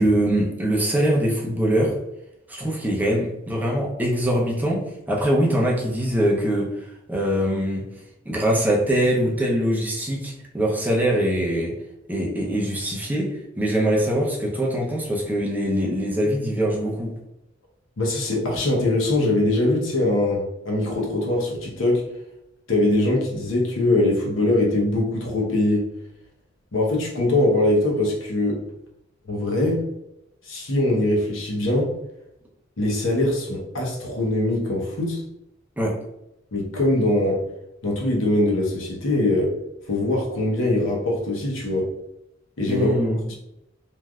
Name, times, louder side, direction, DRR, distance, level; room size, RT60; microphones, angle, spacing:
voice 1, 0.0-2.0 2.5-7.8 8.3-11.8 12.1-17.1 35.8-36.0 42.7-43.2, equal, 10° right, -3 dB, 0.6 m, -23 dB
voice 2, 18.0-22.1 22.7-25.9 26.7-28.6 29.3-29.8 30.4-31.9 32.8-35.2 36.5-37.4 37.8-39.5 39.9-41.9 42.6-42.9 43.3-43.4, left 1 dB, 85° left, -1 dB, 0.9 m, -22 dB
3.2 x 2.5 x 2.3 m, 0.85 s
head